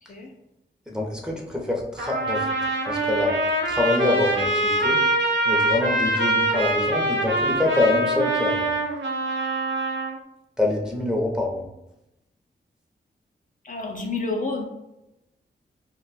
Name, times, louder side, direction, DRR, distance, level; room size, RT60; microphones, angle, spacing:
voice 1, 0.9-2.5 2.9-3.4 3.7-5.0 5.5-8.7 10.6-11.7, left 2 dB, 5° right, -2 dB, 0.7 m, -25 dB
Trumpet, 2.0-10.1, right 2 dB, 85° right, 0.6 m, -24 dB
voice 2, 13.6-14.7, left 3 dB, 45° left, 0 dB, 0.5 m, -29 dB
2.4 x 2.2 x 4.0 m, 0.88 s
cardioid pair, 70°, 19 cm